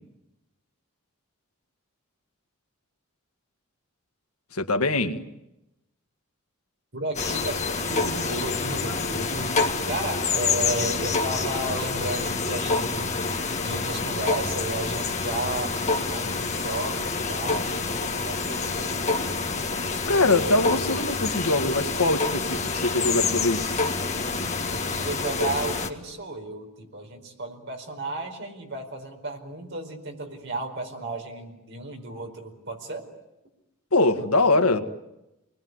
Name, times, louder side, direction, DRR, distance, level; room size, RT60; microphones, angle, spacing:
voice 1, 4.5-5.2 20.1-23.9 33.9-34.8, left 2 dB, 90° left, 7 dB, 1.9 m, -23 dB
voice 2, 6.9-9.6 9.9-13.1 13.6-19.0 24.7-33.1 34.6-34.7, right 2 dB, 55° right, 3 dB, 4.9 m, -33 dB
sound 1, 7.1-25.9, left 4 dB, 30° left, 1.9 m, -27 dB
28.5 x 21.0 x 9.7 m, 0.91 s
head